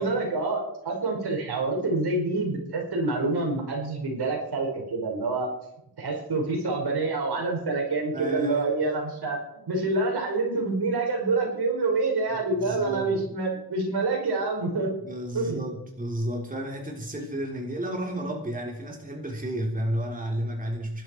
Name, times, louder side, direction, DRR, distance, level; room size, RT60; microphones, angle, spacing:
voice 1, 0.0-5.5 6.0-9.4 9.7-14.9 15.3-15.7, right 3 dB, 75° right, 1 dB, 5.2 m, -27 dB
voice 2, 8.1-9.1 12.3-13.2 15.0-21.0, right 1 dB, 20° right, 0 dB, 3.6 m, -32 dB
23.0 x 12.0 x 4.6 m, 0.83 s
wide cardioid pair, 110°, 39 cm